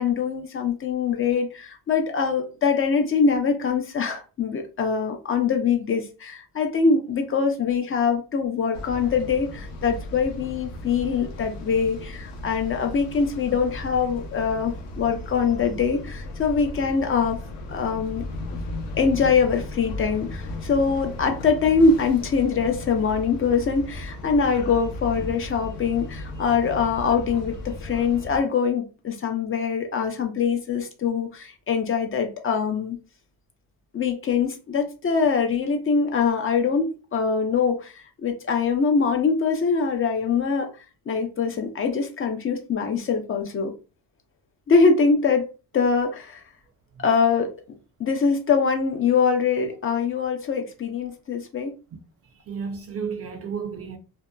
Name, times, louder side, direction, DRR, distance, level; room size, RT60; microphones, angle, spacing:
voice 1, 0.0-17.4 17.7-18.3 19.0-33.0 33.9-40.7 41.1-43.7 44.7-45.5 45.7-46.4 47.0-47.5 48.0-51.7, left 5 dB, 35° left, 0.4 m, -23 dB
sound 1, 8.7-28.4, left 1 dB, 90° left, 0.8 m, -36 dB
voice 2, 52.3-54.0, right 6 dB, 40° right, 0.4 m, -33 dB
2.7 x 2.1 x 2.2 m
cardioid pair, 115°, 40 cm